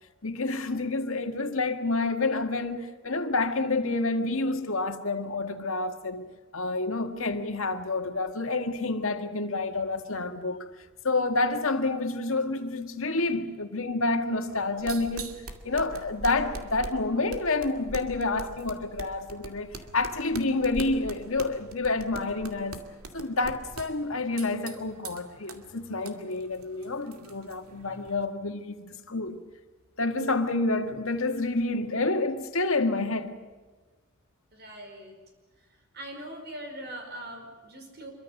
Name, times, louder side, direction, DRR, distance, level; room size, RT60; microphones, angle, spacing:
voice 1, 0.2-10.7 11.0-15.4 15.6-22.9 23.1-29.4 30.0-33.3, left 3 dB, 70° left, 1.9 m, -29 dB
sound 1, 14.5-28.3, right 2 dB, 90° right, 2.4 m, -43 dB
voice 2, 34.5-35.1 35.9-38.1, right 1 dB, 50° right, 5.3 m, -41 dB
26.0 x 23.5 x 6.6 m
head